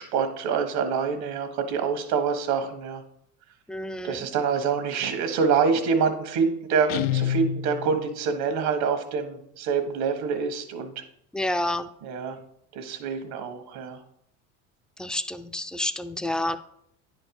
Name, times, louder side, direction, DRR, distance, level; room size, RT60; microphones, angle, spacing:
voice 1, 0.0-3.0 4.0-11.0 12.0-12.4 12.7-14.0, right 6 dB, 70° right, 7 dB, 1.5 m, -26 dB
voice 2, 3.7-4.2 11.3-11.9 15.0-16.6, left 1 dB, ahead, 10 dB, 0.4 m, -29 dB
Guitar, 6.9-8.2, left 10 dB, 90° left, 0.6 m, -28 dB
10.0 x 4.5 x 4.8 m, 0.72 s
supercardioid pair, 85°, 39 cm